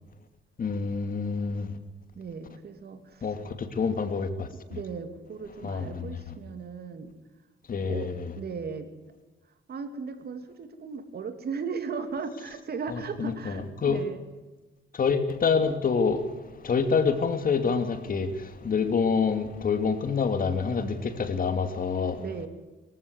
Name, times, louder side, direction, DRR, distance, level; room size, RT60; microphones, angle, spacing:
voice 1, 0.6-1.7 3.2-3.4 3.8-4.5 5.6-6.1 7.7-8.3 12.9-14.0 15.0-16.2 16.6-18.3 18.6-22.2, left 5 dB, 45° left, 2.6 m, -26 dB
voice 2, 2.2-3.3 4.7-7.1 7.9-8.1 8.4-8.9 9.7-14.2 22.2-22.5, right 5 dB, 55° right, 3.0 m, -37 dB
23.0 x 15.0 x 8.4 m
cardioid pair, 90°, 20 cm